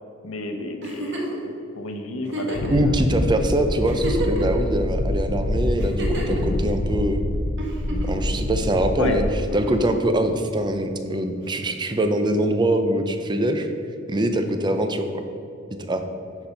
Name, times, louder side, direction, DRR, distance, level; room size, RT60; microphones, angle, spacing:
voice 1, 0.2-1.3 1.8-2.9 9.0-9.2, left 3 dB, 70° left, 4 dB, 1.0 m, -30 dB
Giggle, 0.8-1.4 2.3-2.8 3.4-3.5 3.8-4.6 5.8-6.4 7.6-8.2 9.5-10.0 11.5-11.6, right 1 dB, 60° right, 1.4 m, -30 dB
Wind, 2.5-9.7, left 1 dB, 45° left, 0.6 m, -26 dB
voice 2, 2.7-7.2 8.1-9.2 9.5-13.7 14.1-15.2 15.8-16.0, right 1 dB, 20° right, 7 dB, 0.6 m, -23 dB
10.5 x 4.4 x 5.3 m, 2.7 s
head